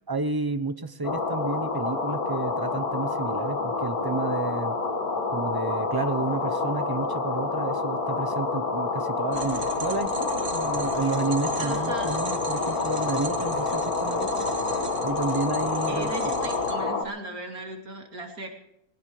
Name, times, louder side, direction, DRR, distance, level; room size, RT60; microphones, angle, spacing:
voice 1, 0.1-4.7 5.3-14.5 15.0-16.1, right 3 dB, 25° right, 9 dB, 0.6 m, -31 dB
sound 1, 1.0-17.0, left 3 dB, 80° left, 2.2 m, -28 dB
sound 2, 9.3-16.8, right 4 dB, 50° right, 1.6 m, -38 dB
voice 2, 11.6-12.1 15.9-18.5, right 2 dB, 75° right, 2 dB, 3.2 m, -38 dB
21.0 x 17.5 x 3.2 m, 0.84 s
omnidirectional pair, 1.6 m